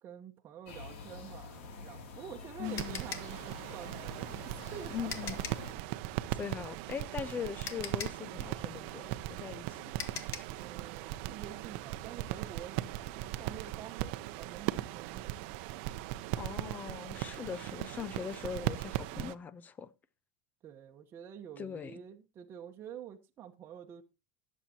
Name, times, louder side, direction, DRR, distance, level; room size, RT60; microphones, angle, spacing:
voice 1, 0.0-5.5 10.6-15.4 20.6-24.0, right 9 dB, 35° right, 1.1 m, -48 dB
sound 1, 0.7-5.7, left 4 dB, 80° left, 2.8 m, -48 dB
voice 2, 2.6-3.0 4.9-5.4 6.4-10.2 16.4-19.9 21.6-22.0, left 7 dB, 25° left, 0.8 m, -41 dB
sound 2, 2.6-19.3, right 15 dB, 65° right, 0.7 m, -39 dB
sound 3, 2.8-5.7 7.1-7.2 7.6-10.6, left 8 dB, 45° left, 1.5 m, -43 dB
19.5 x 7.5 x 2.9 m
supercardioid pair, 130°, 7 cm